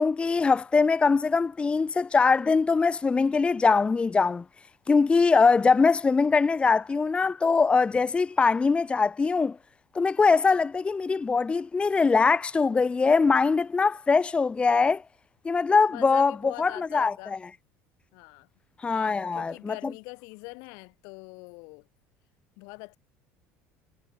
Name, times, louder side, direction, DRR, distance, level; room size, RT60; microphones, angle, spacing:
voice 1, 0.0-4.4 4.9-9.6 9.9-15.0 15.4-16.3 16.6-17.1 18.8-19.7, left 4 dB, 20° left, 0.7 m, -22 dB
voice 2, 15.9-17.4 18.1-18.5 18.9-21.9 22.6-23.0, left 31 dB, 80° left, 3.5 m, -43 dB
cardioid pair, 120°, 6 cm